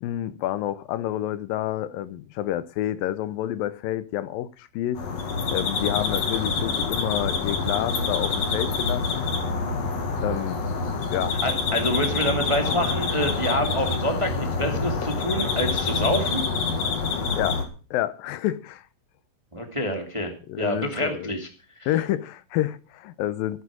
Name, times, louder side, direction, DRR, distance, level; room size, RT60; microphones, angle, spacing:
voice 1, 0.0-5.0 5.5-9.3 10.2-10.6 11.1-11.4 17.1-17.6 17.9-18.8 20.5-21.3 21.9-23.6, left 13 dB, 80° left, 2.5 m, -29 dB
sound 1, 5.0-17.6, left 4 dB, 50° left, 2.9 m, -26 dB
voice 2, 11.4-16.4 19.5-21.5 21.8-21.9, equal, 10° right, 1.6 m, -27 dB
15.0 x 9.7 x 6.2 m
omnidirectional pair, 4.0 m